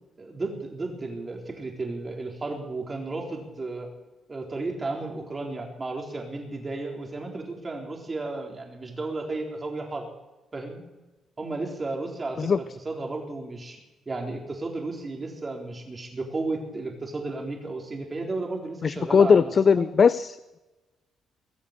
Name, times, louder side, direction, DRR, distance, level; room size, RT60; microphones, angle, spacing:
voice 1, 0.2-3.9 4.3-10.1 10.5-10.8 11.4-13.8 14.1-19.9, right 3 dB, 30° right, 1 dB, 4.0 m, -33 dB
voice 2, 18.8-20.4, left 6 dB, 45° left, 17 dB, 0.4 m, -19 dB
21.0 x 7.3 x 8.0 m, 1.1 s
cardioid pair, 90°, 0 cm